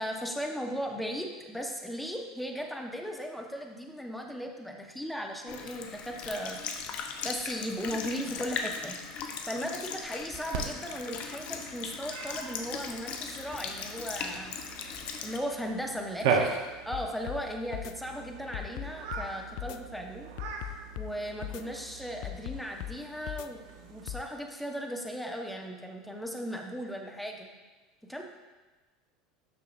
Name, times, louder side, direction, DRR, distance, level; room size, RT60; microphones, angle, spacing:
voice 1, 0.0-6.7 7.2-8.9 9.4-15.0 15.2-16.5 16.9-20.3 21.0-27.5 28.1-28.2, equal, 5° left, 2 dB, 1.1 m, -37 dB
Sink (filling or washing) / Liquid, 5.5-15.4, left 6 dB, 50° left, 0.8 m, -38 dB
Cat, 10.5-24.2, right 5 dB, 70° right, 1.0 m, -38 dB
sound 1, 16.9-17.4 17.7-17.9 18.5-19.3 19.6-19.8 20.4-21.1 21.4-21.6 22.2-23.0 23.3-23.5 24.1-24.2, left 16 dB, 70° left, 0.3 m, -38 dB
9.4 x 6.7 x 2.6 m, 1.3 s
hypercardioid pair, 90°, 3 cm